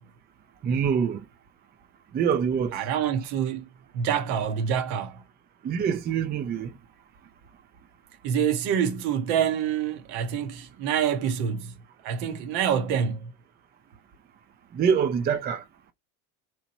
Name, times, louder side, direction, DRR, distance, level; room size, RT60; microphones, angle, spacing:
voice 1, 0.6-1.2 2.1-2.8 5.6-6.7 14.7-15.6, right 7 dB, 25° right, 0.4 m, -25 dB
voice 2, 2.7-3.7 3.9-5.2 8.2-11.7 12.0-13.3, right 8 dB, 60° right, 0.7 m, -26 dB
2.8 x 2.1 x 2.7 m
hypercardioid pair, 70°, 43 cm